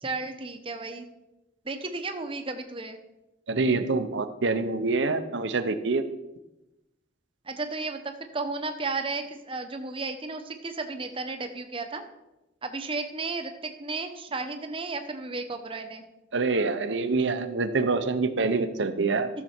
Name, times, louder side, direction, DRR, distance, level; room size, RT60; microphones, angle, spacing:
voice 1, 0.0-1.1 1.7-3.0 7.5-12.0 12.6-16.0, right 3 dB, 30° right, 6 dB, 1.0 m, -33 dB
voice 2, 3.5-6.0 16.3-19.3, right 3 dB, 75° right, 9 dB, 0.8 m, -26 dB
14.0 x 6.9 x 4.5 m, 0.96 s
head